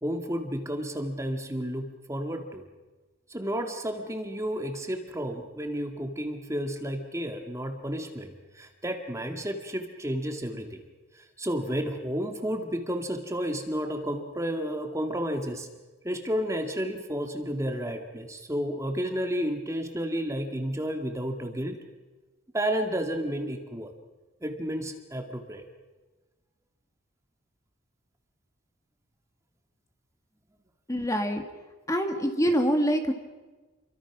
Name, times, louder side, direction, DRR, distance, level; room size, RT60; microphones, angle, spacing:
voice 1, 0.0-2.6 3.3-10.8 11.1-15.7 16.0-21.8 22.5-23.9 24.4-25.6, equal, 15° right, 4 dB, 2.1 m, -31 dB
voice 2, 30.9-31.4 31.9-33.1, equal, 15° left, 5 dB, 1.9 m, -25 dB
29.5 x 24.0 x 6.1 m, 1.2 s
head